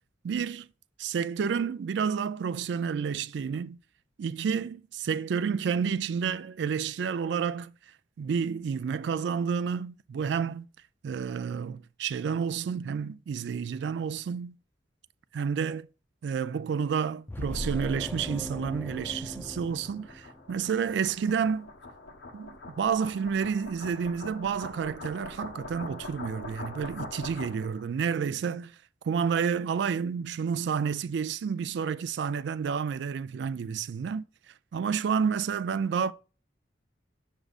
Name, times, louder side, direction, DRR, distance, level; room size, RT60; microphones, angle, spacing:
voice 1, 0.2-0.7 1.0-3.8 4.2-7.7 8.2-10.7 11.0-14.5 15.3-15.9 16.2-21.7 22.3-28.7 29.0-34.2 34.7-36.1, right 6 dB, 70° right, 0.3 m, -30 dB
sound 1, 17.3-20.7, left 1 dB, 10° left, 0.3 m, -38 dB
sound 2, 17.9-27.8, left 2 dB, 70° left, 1.2 m, -44 dB
6.6 x 6.0 x 2.4 m
head